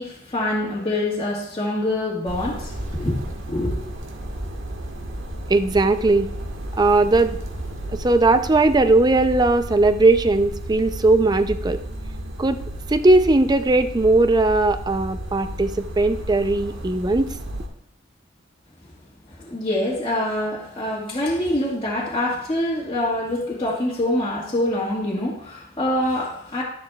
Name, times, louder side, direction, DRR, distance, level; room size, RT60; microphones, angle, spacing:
voice 1, 0.0-3.7 19.4-26.6, left 1 dB, 25° left, -7 dB, 1.6 m, -25 dB
sound 1, 2.2-17.7, right 1 dB, 90° right, 1.5 m, -33 dB
voice 2, 5.5-6.3 6.8-7.4 7.9-11.8 12.4-12.6 12.9-17.3, right 2 dB, 20° right, 10 dB, 0.4 m, -18 dB
12.5 x 10.5 x 2.3 m, 0.71 s
head